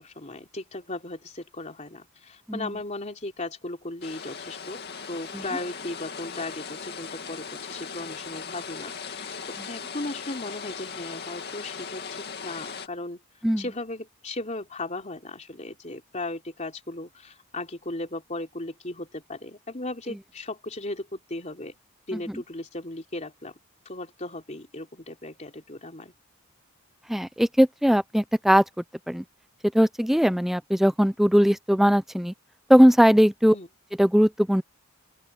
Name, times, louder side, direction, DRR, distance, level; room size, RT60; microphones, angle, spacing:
voice 1, 0.0-4.8 5.1-9.3 9.7-13.2 13.6-21.8 22.1-23.5 23.9-26.1 33.5-33.7, left 2 dB, 30° left, 3.5 m, -36 dB
sound 1, 4.0-12.9, left 6 dB, 45° left, 2.4 m, -38 dB
voice 2, 27.1-28.6 29.1-29.2 29.7-32.3 32.7-33.5 34.0-34.6, equal, ahead, 0.4 m, -19 dB
open air
head